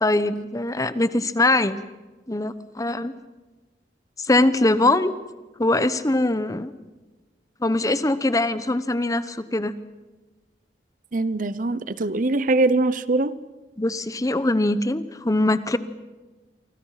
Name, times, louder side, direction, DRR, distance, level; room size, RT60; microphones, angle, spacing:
voice 1, 0.0-1.8 2.3-3.1 4.2-5.1 5.6-6.7 7.6-9.8 13.8-15.8, left 2 dB, 20° left, 13 dB, 0.9 m, -22 dB
voice 2, 11.1-13.3, right 2 dB, 50° right, 16 dB, 0.8 m, -22 dB
29.0 x 24.5 x 5.8 m, 1.2 s
head